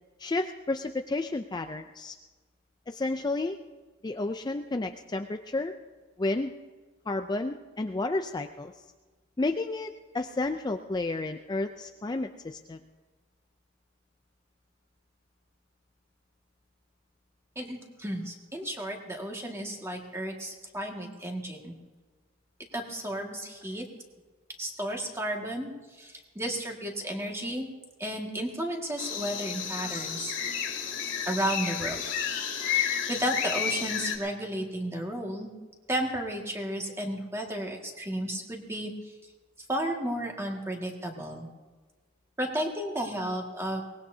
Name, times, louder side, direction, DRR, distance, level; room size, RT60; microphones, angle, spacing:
voice 1, 0.2-2.2 2.9-3.6 4.0-5.7 6.2-6.5 7.1-8.7 9.4-12.8, left 2 dB, 20° left, 6 dB, 0.4 m, -31 dB
voice 2, 17.6-21.7 22.7-23.9 24.6-25.7 26.0-27.7 28.0-30.4 31.3-32.0 32.7-35.5 35.9-38.9 39.7-41.5 42.4-43.8, right 1 dB, 15° right, 1 dB, 1.9 m, -33 dB
sound 1, 29.0-34.2, left 8 dB, 70° left, 2.4 m, -31 dB
23.0 x 19.0 x 2.8 m, 1.3 s
head